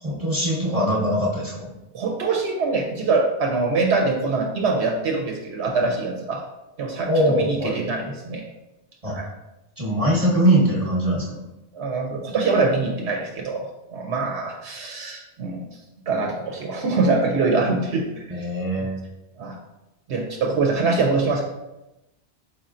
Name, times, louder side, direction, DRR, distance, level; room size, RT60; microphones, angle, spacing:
voice 1, 0.0-1.7 7.0-7.7 9.0-9.1 9.8-11.4 18.3-19.0, right 1 dB, 35° right, -7 dB, 1.0 m, -22 dB
voice 2, 1.9-6.4 6.8-8.4 9.1-9.3 11.7-15.6 16.1-18.5 18.8-18.9 19.4-19.6 20.1-21.4, right 3 dB, 80° right, 0 dB, 0.9 m, -24 dB
4.7 x 4.2 x 2.5 m, 0.96 s
omnidirectional pair, 1.1 m